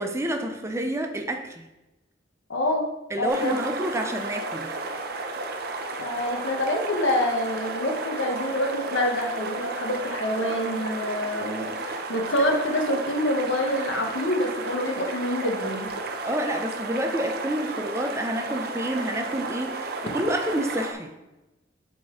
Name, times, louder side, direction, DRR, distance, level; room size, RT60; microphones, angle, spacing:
voice 1, 0.0-1.6 3.1-4.7 16.2-21.1, right 1 dB, 15° right, 6 dB, 0.4 m, -29 dB
voice 2, 2.5-2.9 3.2-3.6 6.0-15.9, left 1 dB, 75° left, 2 dB, 1.1 m, -26 dB
sound 1, 3.3-20.9, right 3 dB, 55° right, 0.7 m, -33 dB
7.7 x 4.0 x 3.7 m, 1.0 s
head